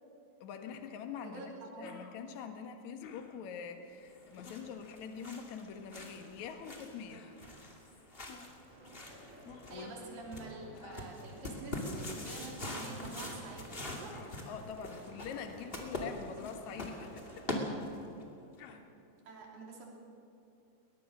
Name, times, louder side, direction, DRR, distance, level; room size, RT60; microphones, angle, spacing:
voice 1, 0.4-7.3 9.7-10.0 14.5-17.5, left 6 dB, 60° left, 6 dB, 2.6 m, -44 dB
sound 1, 0.7-0.8 1.5-1.6 1.8-2.2 3.0-3.5 4.4-4.6 6.0-6.3 7.1-7.4 8.3-8.6 9.4-9.8 10.7-11.1 12.0-12.3 13.1-13.3 14.1-14.3 15.3-15.5 16.4-16.7 17.5-17.8 18.6-18.8, left 6 dB, 90° left, 3.2 m, -53 dB
voice 2, 1.3-1.9 9.7-14.1 19.3-19.9, right 3 dB, 75° right, -1 dB, 4.9 m, -47 dB
sound 2, 4.0-18.2, left 1 dB, 20° left, 2.0 m, -44 dB
sound 3, 8.7-17.7, right 1 dB, 45° right, 4.6 m, -55 dB
22.0 x 19.0 x 6.3 m, 2.8 s
omnidirectional pair, 4.1 m